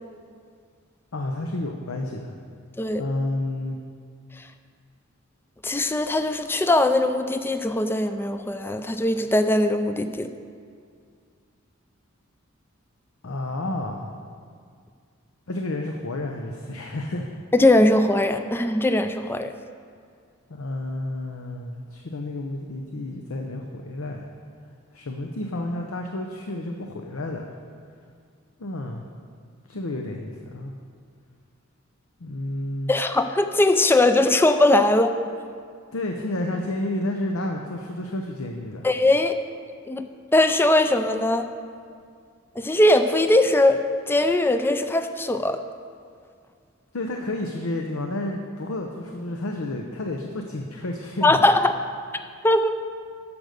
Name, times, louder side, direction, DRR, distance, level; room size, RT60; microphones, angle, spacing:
voice 1, 1.1-2.3 3.0-3.8 13.2-14.1 15.5-17.3 20.5-24.3 24.9-27.5 28.6-29.1 29.7-30.7 32.2-32.9 35.9-38.9 46.9-51.4, left 1 dB, 75° left, 2 dB, 0.7 m, -30 dB
voice 2, 5.6-10.3 17.5-19.5 32.9-35.1 38.8-39.4 39.9-40.0 40.3-41.5 42.6-43.8 44.1-45.6 51.2-51.7 52.4-52.7, left 1 dB, 10° left, 8 dB, 0.4 m, -20 dB
13.0 x 5.2 x 6.5 m, 2.2 s
head